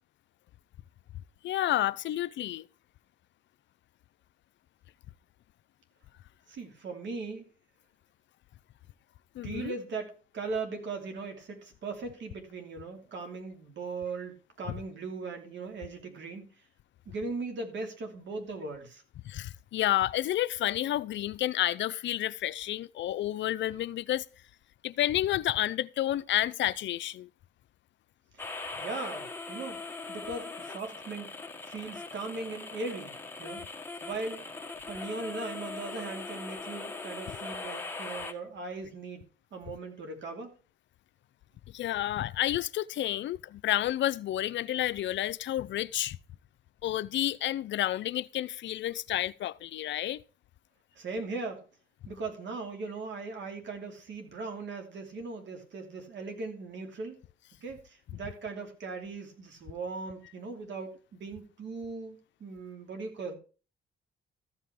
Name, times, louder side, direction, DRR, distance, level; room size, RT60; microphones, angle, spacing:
voice 1, 1.4-2.7 9.3-9.8 19.2-24.3 24.8-27.3 41.7-46.2 46.8-50.2, left 13 dB, 70° left, 0.5 m, -30 dB
voice 2, 6.5-7.5 9.4-16.4 17.1-19.0 28.3-28.4 28.8-29.8 30.1-31.3 31.6-33.6 34.0-34.5 34.8-39.3 39.5-40.5 50.9-51.6 52.1-57.2 57.6-63.4, right 3 dB, 65° right, 2.8 m, -39 dB
sound 1, 28.4-38.3, left 3 dB, 10° left, 1.4 m, -40 dB
14.0 x 5.7 x 4.8 m
cardioid pair, 90°, 20 cm